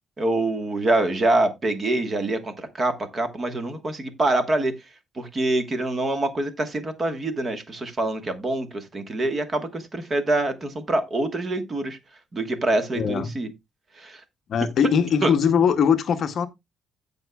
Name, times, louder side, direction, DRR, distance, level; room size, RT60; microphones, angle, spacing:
voice 1, 0.2-4.7 5.1-12.0 12.3-13.5 13.9-14.2 15.2-15.3, right 2 dB, 25° right, 1.3 m, -25 dB
voice 2, 12.9-13.3 14.5-16.5, left 7 dB, 45° left, 0.7 m, -21 dB
16.0 x 5.4 x 2.3 m
cardioid pair, 175°, 0 cm